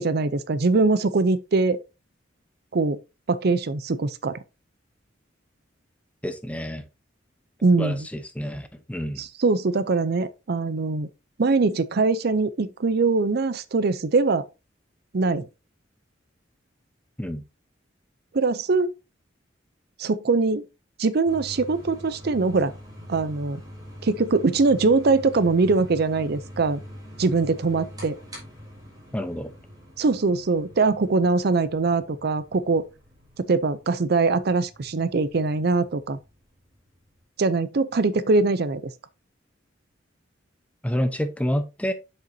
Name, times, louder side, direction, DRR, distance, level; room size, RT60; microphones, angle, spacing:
voice 1, 0.0-1.8 2.7-3.0 3.3-4.4 7.6-8.1 9.2-11.1 11.4-14.5 15.1-15.5 18.3-18.9 20.0-20.6 21.0-22.7 23.1-23.6 24.0-26.8 27.2-28.2 30.0-32.9 33.4-36.2 37.4-38.8, right 3 dB, 55° right, 0.5 m, -22 dB
voice 2, 6.2-6.8 7.8-9.2 17.2-17.4 29.1-29.5 40.8-41.9, equal, 5° left, 0.8 m, -28 dB
sound 1, 21.2-37.2, equal, 20° right, 3.6 m, -44 dB
7.9 x 6.7 x 2.7 m
head